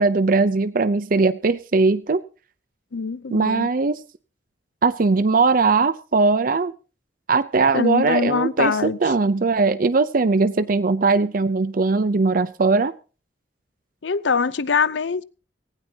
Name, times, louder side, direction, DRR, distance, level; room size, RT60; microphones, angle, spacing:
voice 1, 0.0-2.2 3.3-3.9 4.8-6.7 7.3-12.9, right 4 dB, 50° right, 0.6 m, -19 dB
voice 2, 2.9-3.7 7.7-9.0 14.0-15.2, left 5 dB, 80° left, 0.6 m, -23 dB
18.0 x 16.0 x 2.8 m
head